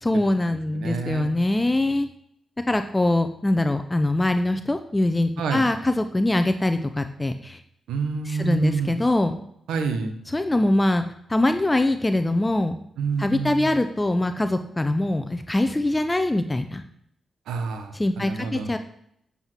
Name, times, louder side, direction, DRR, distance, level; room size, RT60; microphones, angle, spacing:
voice 1, 0.0-2.1 2.7-7.6 8.2-9.4 10.3-11.0 11.3-12.8 13.2-16.8 17.9-18.8, left 1 dB, 20° left, 8 dB, 0.7 m, -23 dB
voice 2, 0.7-1.3 5.4-5.7 7.9-8.9 9.7-10.1 13.0-13.7 17.5-18.7, right 5 dB, 85° right, 7 dB, 1.1 m, -28 dB
8.4 x 7.8 x 4.5 m, 0.72 s
supercardioid pair, 50°, 0 cm